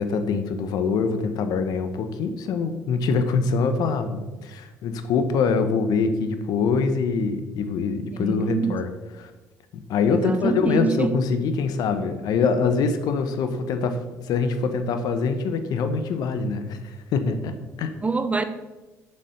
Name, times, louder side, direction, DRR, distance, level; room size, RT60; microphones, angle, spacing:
voice 1, 0.0-9.3 9.9-17.9, left 5 dB, 70° left, 9 dB, 1.1 m, -24 dB
voice 2, 8.2-8.8 10.2-11.1 18.0-18.4, right 4 dB, 20° right, 10 dB, 0.9 m, -24 dB
7.1 x 7.0 x 6.6 m, 1.1 s
supercardioid pair, 75°, 7 cm